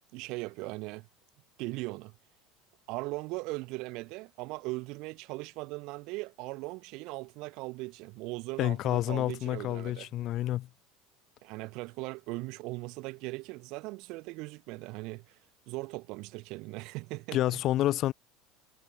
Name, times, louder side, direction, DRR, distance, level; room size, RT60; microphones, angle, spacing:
voice 1, 0.1-1.1 1.6-2.1 2.9-10.1 11.4-15.4 15.7-17.6, right 24 dB, 60° right, 4.6 m, -39 dB
voice 2, 8.6-10.7 17.3-18.1, left 14 dB, 50° left, 2.5 m, -29 dB
hypercardioid pair, 75°, 0 cm